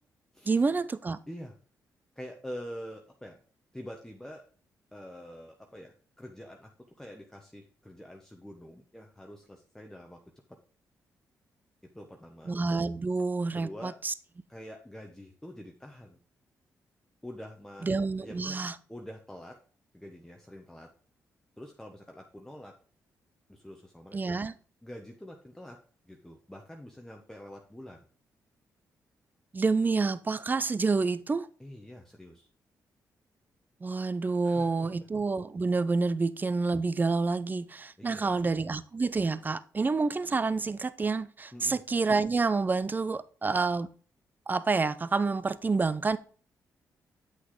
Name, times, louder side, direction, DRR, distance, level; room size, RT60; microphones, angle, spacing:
voice 1, 0.5-1.2 12.5-14.1 17.8-18.8 24.1-24.5 29.5-31.5 33.8-43.9 44.5-46.2, right 4 dB, 30° right, 0.6 m, -28 dB
voice 2, 2.2-3.4 3.7-4.4 4.9-6.7 7.0-10.2 10.5-10.6 11.8-12.5 13.5-14.0 14.5-16.2 17.2-17.9 18.2-18.6 18.9-19.6 19.9-20.9 21.6-22.7 23.5-24.4 24.8-25.8 26.0-28.0 31.6-32.5 34.4-34.9 38.0-38.4 41.5-41.8, equal, 5° left, 1.1 m, -46 dB
8.1 x 6.1 x 3.8 m
cardioid pair, 70°, 7 cm